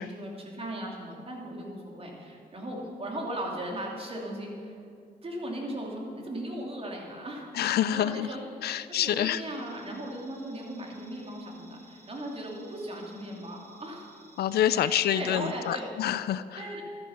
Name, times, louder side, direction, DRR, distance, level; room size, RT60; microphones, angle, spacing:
voice 1, 0.0-4.8 5.2-7.5 7.9-8.4 9.0-14.1 14.7-15.9 16.6-16.8, right 1 dB, 35° right, -1 dB, 2.8 m, -37 dB
voice 2, 7.5-8.3 8.6-9.4 14.4-16.8, left 11 dB, 75° left, 15 dB, 0.4 m, -27 dB
sound 1, 8.9-15.8, right 2 dB, 75° right, 3.2 m, -58 dB
13.0 x 10.5 x 5.7 m, 2.4 s
cardioid pair, 85°, 16 cm